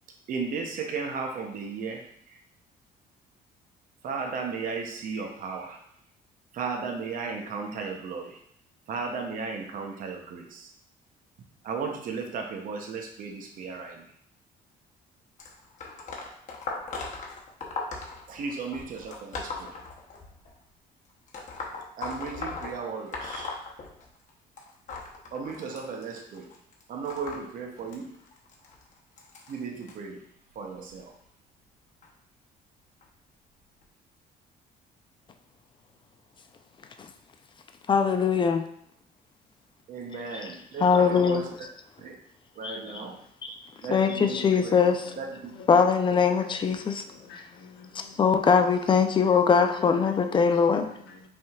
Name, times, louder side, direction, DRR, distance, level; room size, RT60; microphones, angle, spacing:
voice 1, 0.3-2.4 4.0-5.8 6.5-8.4 8.9-10.7 11.6-14.0 18.3-19.8 22.0-23.5 25.3-26.5 26.9-28.1 29.5-30.2 30.5-31.1 39.9-41.5 42.0-42.2 42.6-43.2 43.8-44.8 45.2-45.4 45.7-45.8 46.1-46.2, right 4 dB, 55° right, 0.7 m, -35 dB
sound 1, 15.4-20.5 21.3-24.3 24.6-29.9 30.7-31.0 32.0-32.1 33.0-33.1 33.8-33.9, left 3 dB, 45° left, 0.9 m, -39 dB
voice 2, 37.9-38.6 40.8-41.4 42.6-42.8 43.9-45.1 45.7-47.0 47.9-50.9, left 6 dB, 30° left, 0.5 m, -22 dB
voice 3, 44.0-45.7 46.3-48.5 49.8-51.3, left 4 dB, 75° left, 0.9 m, -47 dB
5.2 x 3.6 x 2.4 m
cardioid pair, 110°, 17 cm